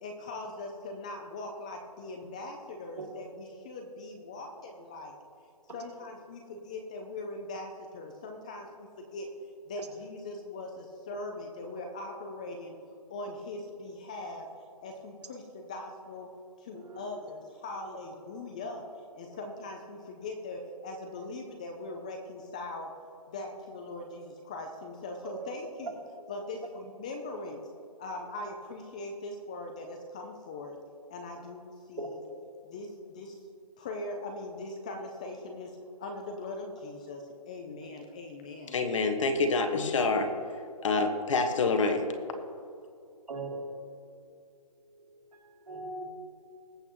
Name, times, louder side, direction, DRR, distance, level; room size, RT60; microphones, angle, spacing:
voice 1, 0.0-5.1 5.7-9.3 9.7-12.8 13.1-14.5 14.8-16.3 16.6-18.8 19.1-22.9 23.3-25.9 26.3-27.6 28.0-30.8 31.1-32.2 32.6-33.4 33.8-38.7, left 2 dB, 10° left, 3 dB, 0.4 m, -41 dB
voice 2, 25.2-25.9 26.2-26.4 26.6-26.7 31.4-31.5 32.0-32.2 43.3-44.2 44.9-46.0, right 3 dB, 85° right, 0 dB, 2.9 m, -41 dB
voice 3, 38.7-40.3 40.8-42.1, left 3 dB, 50° left, 5 dB, 1.5 m, -26 dB
21.0 x 7.7 x 3.0 m, 2.5 s
hypercardioid pair, 160°, 20 cm